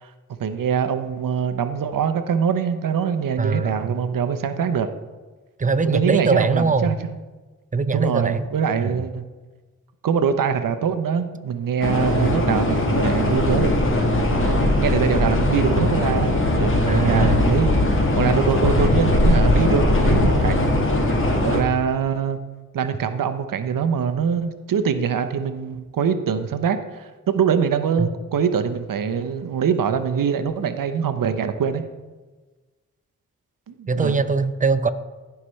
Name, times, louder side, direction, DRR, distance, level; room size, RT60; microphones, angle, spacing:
voice 1, 0.4-4.9 5.8-7.1 7.9-9.2 10.0-13.9 14.3-17.7 18.2-20.9 21.4-22.4 22.7-31.8 33.7-34.2, right 7 dB, 75° right, 9 dB, 0.8 m, -23 dB
voice 2, 3.4-3.9 5.6-7.0 7.7-8.5 8.8-8.9 12.1-12.3 16.8-17.4 28.0-28.1 33.9-34.9, right 4 dB, 25° right, 11 dB, 0.6 m, -22 dB
sound 1, 11.8-21.6, left 1 dB, 35° left, 1.7 m, -20 dB
15.5 x 5.8 x 3.2 m, 1.3 s
cardioid pair, 55°, 34 cm